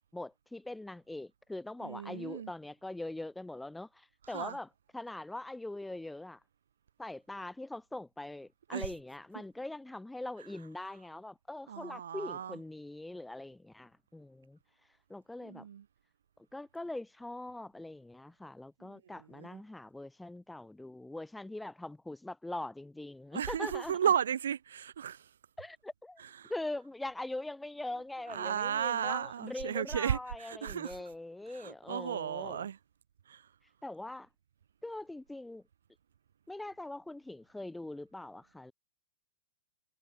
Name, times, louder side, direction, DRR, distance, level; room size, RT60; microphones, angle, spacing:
voice 1, 0.1-4.7 4.9-6.4 7.0-14.6 15.1-15.7 16.5-24.0 25.6-26.2 26.5-32.7 33.8-34.3 34.8-35.6 36.5-38.7, left 2 dB, 5° left, 0.5 m, -42 dB
voice 2, 1.8-2.5 4.3-4.6 8.7-8.9 11.7-12.6 15.4-15.8 18.8-19.6 23.3-25.3 26.2-26.5 28.3-31.0 31.5-32.8 33.3-33.5, right 8 dB, 80° right, 1.0 m, -34 dB
hypercardioid pair, 115°, 0 cm